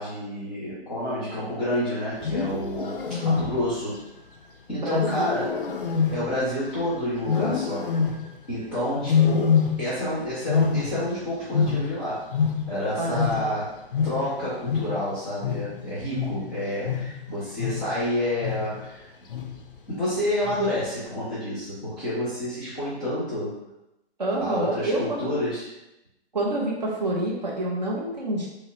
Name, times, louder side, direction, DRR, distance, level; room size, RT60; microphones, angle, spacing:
voice 1, 0.0-4.0 4.7-5.6 6.1-8.0 8.5-12.3 12.7-19.0 19.9-23.6 24.4-25.7, left 1 dB, 10° left, -11 dB, 0.6 m, -29 dB
Wild animals, 2.1-3.8 4.9-6.8 7.2-8.4 9.0-10.1 10.4-12.9 13.1-18.0 18.4-18.9 19.3-19.7 20.4-20.9, left 6 dB, 55° left, 0.4 m, -26 dB
voice 2, 4.7-5.6 13.0-13.5 24.2-25.3 26.3-28.5, right 1 dB, 40° right, -3 dB, 0.7 m, -28 dB
5.4 x 2.1 x 2.6 m, 0.91 s
hypercardioid pair, 175°, 33 cm